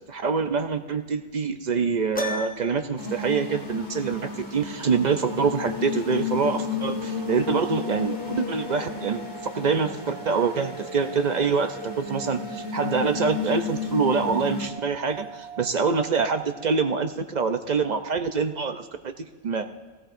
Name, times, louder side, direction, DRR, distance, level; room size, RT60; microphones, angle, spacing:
voice 1, 0.1-9.2 9.5-19.1 19.4-19.7, right 5 dB, 50° right, 8 dB, 0.6 m, -25 dB
Piano, 2.2-3.0, left 2 dB, 10° left, 0.6 m, -32 dB
sound 1, 3.0-14.7, left 5 dB, 40° left, 1.6 m, -33 dB
sound 2, 7.1-17.2, right 6 dB, 85° right, 2.2 m, -44 dB
18.0 x 16.5 x 2.6 m, 1.4 s
omnidirectional pair, 1.2 m